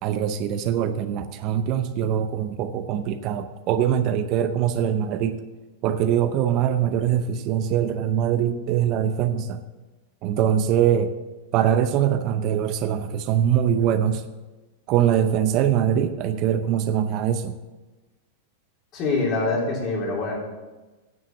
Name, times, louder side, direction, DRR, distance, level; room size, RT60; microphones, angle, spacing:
voice 1, 0.0-5.4 5.8-9.6 10.2-11.1 11.5-14.2 14.9-17.5, right 9 dB, 40° right, 9 dB, 0.6 m, -23 dB
voice 2, 18.9-20.4, left 3 dB, 40° left, -2 dB, 3.6 m, -24 dB
9.3 x 7.3 x 7.1 m, 1.2 s
supercardioid pair, 140°, 0 cm